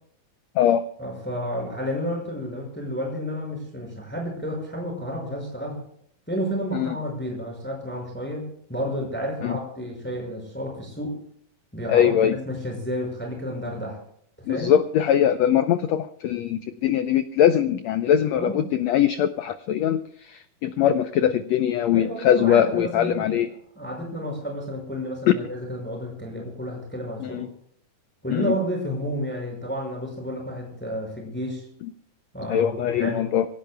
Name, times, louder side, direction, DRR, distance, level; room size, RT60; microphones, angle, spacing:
voice 1, 1.0-5.8 6.3-11.2 11.7-14.0 14.5-14.7 18.3-18.6 21.9-23.4 23.8-27.5 28.2-31.7 32.3-33.3, equal, 5° left, 0 dB, 5.6 m, -31 dB
voice 2, 11.9-12.3 14.5-23.5 25.3-25.4 27.2-27.5 28.3-28.5 32.5-33.5, left 10 dB, 90° left, 10 dB, 1.5 m, -21 dB
26.0 x 17.0 x 2.3 m, 0.66 s
omnidirectional pair, 3.9 m